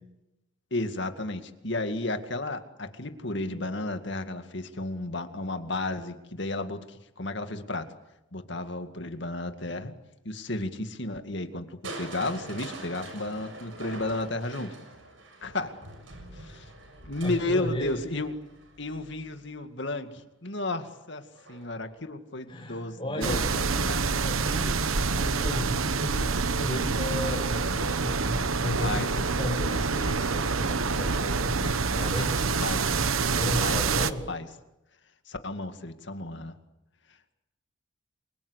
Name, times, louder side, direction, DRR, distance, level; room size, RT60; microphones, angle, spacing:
voice 1, 0.7-7.9 8.3-9.9 10.2-14.7 15.4-15.7 16.3-16.7 17.0-18.3 18.8-21.2 21.5-23.4 23.8-24.1 28.1-28.3 28.8-29.1 32.6-32.8 33.6-34.0 34.3-34.5 35.3-36.5, left 2 dB, 60° left, 8 dB, 2.2 m, -33 dB
Crushing, 11.8-19.8 21.3-21.9 22.3-22.4, right 2 dB, 70° right, 6.5 m, -44 dB
voice 2, 17.2-17.9 22.5-32.7 33.3-34.2, left 1 dB, 25° left, -3 dB, 6.5 m, -35 dB
sound 1, 23.2-34.1, right 4 dB, 90° right, 1.2 m, -27 dB
29.5 x 24.0 x 8.3 m, 0.94 s
head